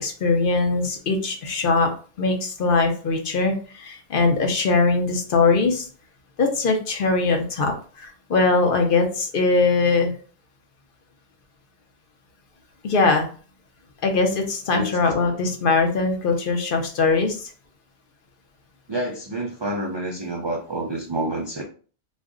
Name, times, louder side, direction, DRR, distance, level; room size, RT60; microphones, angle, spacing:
voice 1, 0.0-1.9 2.2-5.9 6.4-10.1 12.8-13.3 14.0-17.5, left 3 dB, 60° left, 3 dB, 0.8 m, -21 dB
voice 2, 18.9-21.6, right 1 dB, 50° right, -1 dB, 0.3 m, -28 dB
2.4 x 2.1 x 3.5 m, 0.40 s
omnidirectional pair, 1.0 m